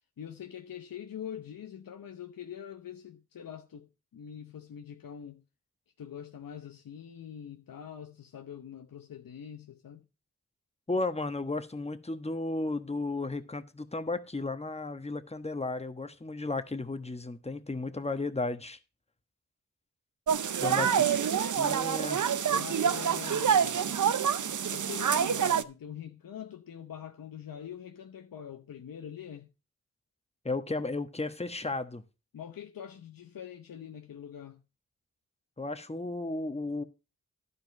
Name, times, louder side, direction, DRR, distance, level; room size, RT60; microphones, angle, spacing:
voice 1, 0.2-5.4 6.0-10.0 20.6-21.1 22.5-23.9 24.6-29.5 32.3-34.6, left 9 dB, 90° left, 0.9 m, -44 dB
voice 2, 10.9-18.8 20.6-21.2 21.6-22.2 30.4-32.0 35.6-36.8, left 2 dB, 20° left, 1.2 m, -34 dB
sound 1, 20.3-25.6, right 8 dB, 65° right, 0.7 m, -27 dB
11.5 x 5.0 x 6.4 m
cardioid pair, 50°, 33 cm